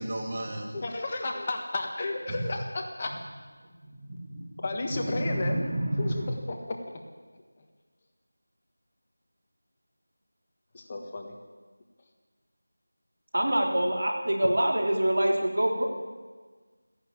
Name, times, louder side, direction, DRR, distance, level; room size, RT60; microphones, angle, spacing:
voice 1, 0.0-0.7 2.3-2.4 4.1-4.4 4.9-6.3, right 1 dB, 30° right, -2 dB, 2.8 m, -31 dB
voice 2, 0.7-3.2 4.6-5.6 6.0-7.0 10.7-11.3, left 2 dB, 25° left, 2 dB, 1.3 m, -33 dB
voice 3, 13.3-15.8, right 1 dB, 75° right, 1 dB, 3.4 m, -25 dB
15.5 x 11.0 x 8.5 m, 1.4 s
figure-of-eight pair, 175°, 0 cm